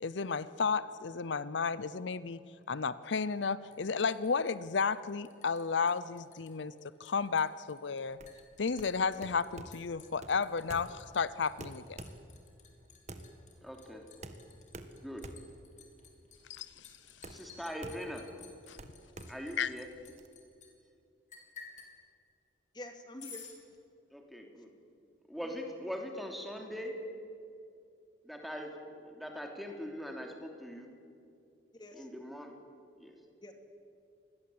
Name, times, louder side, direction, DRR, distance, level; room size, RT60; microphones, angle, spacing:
voice 1, 0.0-2.4 2.7-6.7 7.0-8.2 8.6-12.0 16.5-16.9 17.3-17.4 18.7-18.8 19.6-19.7, left 5 dB, 80° left, 16 dB, 0.7 m, -33 dB
Liquid, 3.7-5.6 5.9-6.5 6.8-20.7 21.3-21.9 23.2-23.6, left 6 dB, 40° left, 4.1 m, -54 dB
sound 1, 8.1-20.3, right 1 dB, 40° right, 1.7 m, -49 dB
voice 2, 13.6-14.0 14.9-15.2 17.3-18.3 19.3-19.9 24.1-24.7 25.3-26.9 28.2-28.7 29.0-30.9 31.9-32.5 33.0-33.1, equal, ahead, 2 dB, 3.1 m, -41 dB
voice 3, 22.7-23.4 25.4-25.5 31.7-32.1 33.4-33.5, left 1 dB, 25° left, 5 dB, 2.5 m, -47 dB
27.0 x 21.0 x 8.7 m, 2.5 s
head